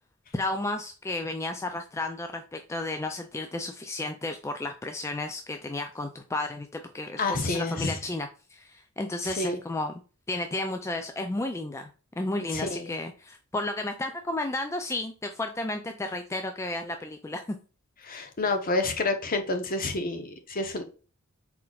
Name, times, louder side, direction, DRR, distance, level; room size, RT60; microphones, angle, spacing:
voice 1, 0.3-9.9 10.3-11.9 12.2-17.6, left 2 dB, 15° left, 6 dB, 0.3 m, -33 dB
voice 2, 7.2-8.0 9.2-9.6 12.5-12.9 18.0-20.8, left 2 dB, 45° left, 6 dB, 0.8 m, -29 dB
4.3 x 4.0 x 2.3 m, 0.37 s
head